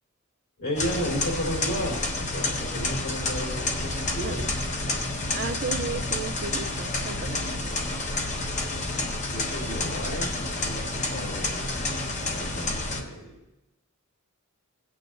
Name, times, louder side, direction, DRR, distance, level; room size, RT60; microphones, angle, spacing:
voice 1, 0.6-4.4 7.6-8.8 9.3-11.7 12.2-13.4, equal, 70° left, -3 dB, 3.6 m, -34 dB
sound 1, 0.8-13.0, left 2 dB, 35° left, 1.1 m, -29 dB
voice 2, 5.3-7.4, right 4 dB, 45° right, 10 dB, 0.5 m, -34 dB
18.5 x 8.5 x 2.6 m, 0.95 s
head